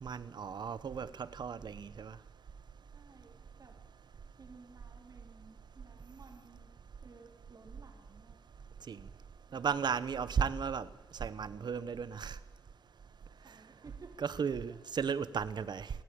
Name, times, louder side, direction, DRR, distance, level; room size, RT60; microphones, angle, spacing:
voice 1, 0.0-2.2 8.9-9.0 9.5-10.9 11.2-12.4 14.2-15.9, right 6 dB, 80° right, 1.0 m, -35 dB
voice 2, 2.9-3.8 4.4-6.7 7.0-8.4 9.5-9.9 13.4-14.8, right 4 dB, 55° right, 3.9 m, -57 dB
29.0 x 14.5 x 8.8 m
wide cardioid pair, 115°, 7 cm